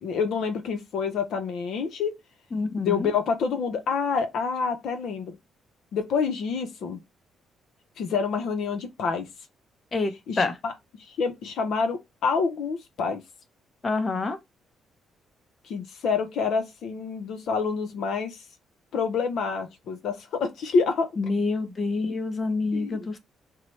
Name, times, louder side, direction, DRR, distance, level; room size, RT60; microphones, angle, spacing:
voice 1, 0.0-2.1 2.8-5.3 5.9-7.0 8.0-9.3 10.3-10.7 11.0-13.2 15.6-18.4 18.9-21.1 22.7-23.0, left 5 dB, 75° left, 0.6 m, -27 dB
voice 2, 2.5-3.1 9.9-10.5 13.8-14.4 21.2-23.2, left 3 dB, 35° left, 0.7 m, -27 dB
4.4 x 2.0 x 3.0 m
cardioid pair, 90°, 0 cm